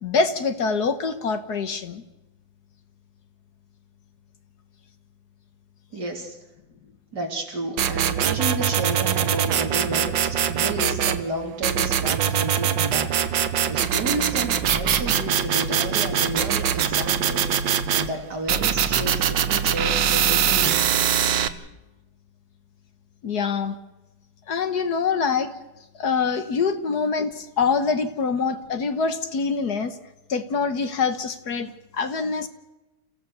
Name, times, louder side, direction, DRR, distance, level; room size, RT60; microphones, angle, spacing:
voice 1, 0.0-2.0 23.2-23.8 24.5-25.5 26.0-30.0 30.3-32.5, left 5 dB, 60° left, 10 dB, 1.7 m, -25 dB
voice 2, 5.9-6.4 7.1-21.2, right 2 dB, 60° right, 2 dB, 3.8 m, -32 dB
sound 1, 7.8-11.2 11.6-18.1 18.5-21.5, right 9 dB, 75° right, 1.8 m, -22 dB
29.0 x 15.5 x 6.9 m, 1.0 s
omnidirectional pair, 2.0 m